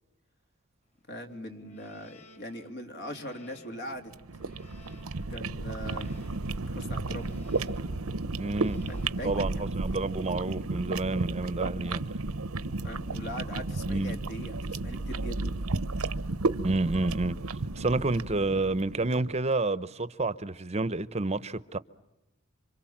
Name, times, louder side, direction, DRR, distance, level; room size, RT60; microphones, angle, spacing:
voice 1, 1.1-4.1 5.3-6.2 6.7-7.4 8.9-9.7 9.9-10.1 12.8-15.5, equal, 55° left, 3.4 m, -41 dB
sound 1, 1.2-11.1, right 4 dB, 35° left, 4.7 m, -54 dB
sound 2, 4.1-19.3, right 3 dB, 90° right, 1.0 m, -33 dB
voice 2, 8.4-8.8 9.2-12.0 13.9-14.2 16.6-17.4 17.8-21.8, right 2 dB, 30° right, 0.9 m, -29 dB
28.0 x 26.0 x 7.3 m
head